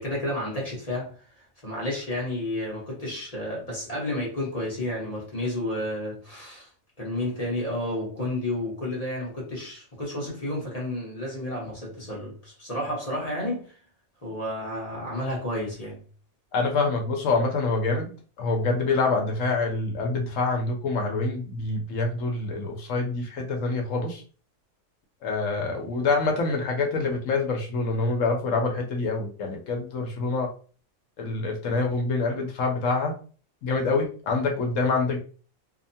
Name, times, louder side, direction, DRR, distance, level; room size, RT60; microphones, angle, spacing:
voice 1, 0.0-6.7 7.0-13.7 14.2-16.0, left 1 dB, 30° left, 0.9 m, -31 dB
voice 2, 16.5-18.1 18.4-24.2 25.2-30.5 31.2-33.1 33.6-35.2, left 3 dB, 70° left, 1.0 m, -26 dB
2.8 x 2.1 x 2.6 m
omnidirectional pair, 1.5 m